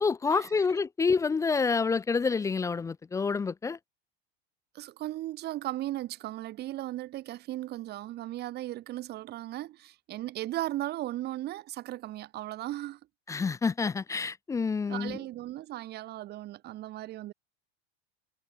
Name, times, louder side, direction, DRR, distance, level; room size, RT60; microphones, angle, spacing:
voice 1, 0.0-3.8 13.3-15.2, left 5 dB, 10° left, 0.7 m, -28 dB
voice 2, 4.8-13.0 14.9-17.3, right 15 dB, 35° right, 3.4 m, -37 dB
supercardioid pair, 165°, 30 cm